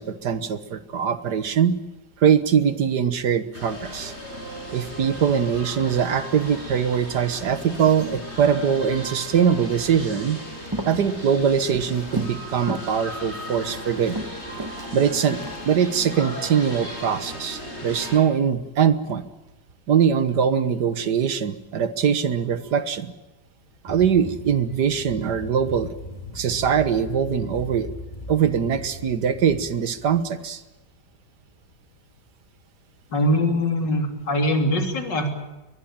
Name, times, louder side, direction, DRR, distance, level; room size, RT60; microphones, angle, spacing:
voice 1, 0.0-1.8 2.2-4.1 4.7-10.4 10.9-14.2 14.9-19.2 19.9-23.1 23.8-25.9 26.4-27.9 28.3-30.6, right 7 dB, 70° right, 12 dB, 1.8 m, -22 dB
sound 1, 3.5-18.2, equal, 35° left, 6.3 m, -37 dB
Walk footsteps, 10.5-12.4 12.7-13.0 13.3-16.0 16.6-16.8, right 1 dB, 15° right, 1.6 m, -34 dB
sound 2, 23.9-30.2, left 1 dB, 20° left, 2.8 m, -39 dB
voice 2, 33.1-35.3, left 1 dB, 80° left, 4 dB, 3.9 m, -22 dB
22.5 x 20.5 x 8.8 m, 1.0 s
omnidirectional pair, 1.9 m